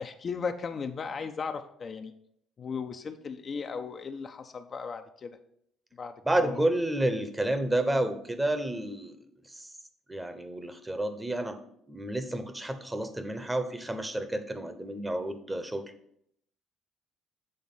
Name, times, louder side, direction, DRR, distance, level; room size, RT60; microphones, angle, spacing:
voice 1, 0.0-2.1 2.6-5.4 6.0-6.6, left 5 dB, 45° left, 6 dB, 0.6 m, -36 dB
voice 2, 6.2-9.2 9.5-9.7 10.1-11.6 11.9-15.9, right 1 dB, 15° right, 9 dB, 0.9 m, -30 dB
7.8 x 3.5 x 5.5 m, 0.70 s
hypercardioid pair, 60°, 0 cm